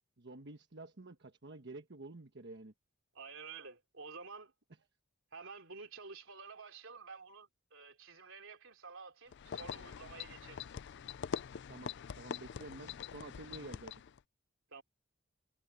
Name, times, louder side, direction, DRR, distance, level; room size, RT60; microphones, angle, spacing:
voice 1, 0.2-2.7 11.7-14.0, right 2 dB, 55° right, 1.2 m, -50 dB
voice 2, 3.1-4.5 5.3-10.7 14.7-14.8, right 4 dB, 75° right, 3.5 m, -50 dB
sound 1, 9.3-14.2, left 7 dB, 60° left, 0.4 m, -44 dB
head